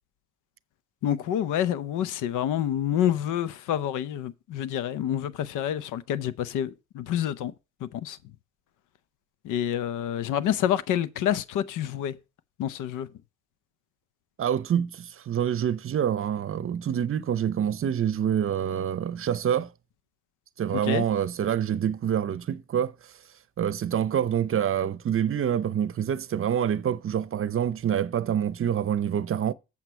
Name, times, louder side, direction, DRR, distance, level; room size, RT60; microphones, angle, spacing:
voice 1, 1.0-7.5 7.8-8.2 9.4-12.2 12.6-13.1 20.8-21.0, left 10 dB, 85° left, 0.7 m, -28 dB
voice 2, 14.4-19.7 20.6-22.9 23.6-29.5, right 9 dB, 45° right, 0.7 m, -26 dB
8.0 x 7.3 x 4.4 m
cardioid pair, 90°, 30 cm